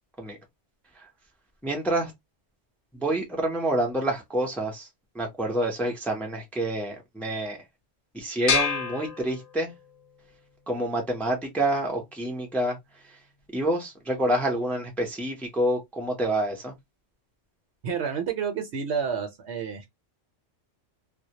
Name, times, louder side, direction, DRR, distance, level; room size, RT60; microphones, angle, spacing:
voice 1, 1.6-2.1 2.9-4.9 5.1-7.6 8.1-9.7 10.7-12.8 13.5-16.7, right 1 dB, ahead, 0.4 m, -27 dB
sound 1, 8.5-10.0, left 6 dB, 65° left, 0.9 m, -28 dB
voice 2, 17.8-19.9, right 6 dB, 70° right, 0.8 m, -29 dB
2.2 x 2.1 x 2.7 m
omnidirectional pair, 1.3 m